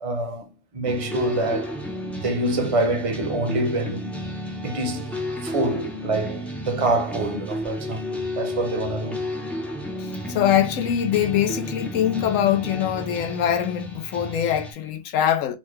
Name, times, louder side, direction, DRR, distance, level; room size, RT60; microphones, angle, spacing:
voice 1, 0.0-1.8 2.2-4.2 4.6-5.2 5.4-9.2, right 2 dB, 35° right, 0.7 m, -26 dB
sound 1, 0.9-14.7, equal, ahead, 0.4 m, -32 dB
voice 2, 10.0-15.6, left 10 dB, 85° left, 1.0 m, -23 dB
4.3 x 2.2 x 3.1 m
omnidirectional pair, 1.3 m